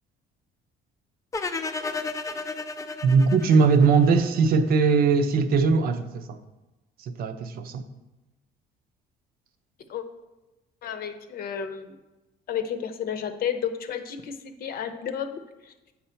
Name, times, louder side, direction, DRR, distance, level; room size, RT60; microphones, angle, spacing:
sound 1, 1.3-4.5, left 3 dB, 20° left, 0.4 m, -33 dB
voice 1, 3.0-6.4 7.2-7.8, right 5 dB, 60° right, 0.7 m, -20 dB
voice 2, 10.8-11.9 12.5-15.7, left 8 dB, 60° left, 0.8 m, -32 dB
7.6 x 5.7 x 4.4 m
cardioid pair, 110°, 17 cm